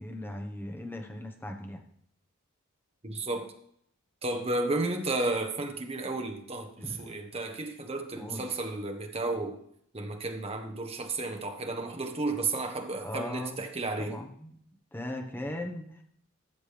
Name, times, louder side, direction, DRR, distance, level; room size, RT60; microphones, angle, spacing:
voice 1, 0.0-1.8 6.8-7.1 8.2-8.4 13.0-13.6 14.0-14.5 14.9-16.0, left 1 dB, 10° left, 3 dB, 1.1 m, -38 dB
voice 2, 3.0-3.5 4.2-9.6 9.9-14.2, right 2 dB, 30° right, 5 dB, 1.1 m, -32 dB
13.0 x 7.6 x 3.4 m, 0.69 s
head